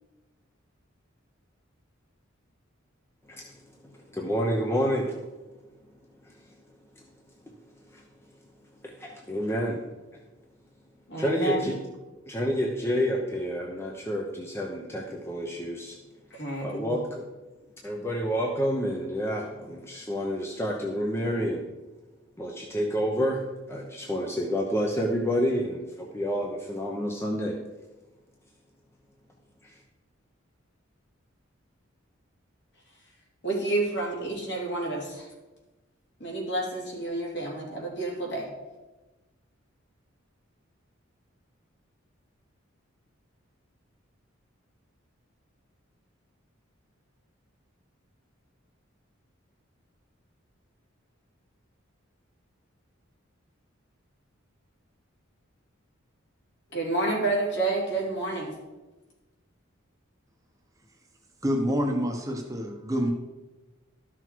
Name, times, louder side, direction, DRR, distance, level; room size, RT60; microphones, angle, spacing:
voice 1, 4.1-5.2 6.2-6.3 7.9-8.0 8.8-9.8 11.2-11.8 12.3-16.0 16.6-17.2 17.8-21.7 22.4-27.6 29.6-29.7, equal, 10° left, 0.9 m, -29 dB
voice 2, 11.1-11.8 16.3-17.0 33.4-35.3 36.2-38.5 56.7-58.5, right 2 dB, 60° left, 2.7 m, -29 dB
voice 3, 61.4-63.1, equal, 15° right, 1.0 m, -27 dB
12.5 x 6.1 x 4.6 m
head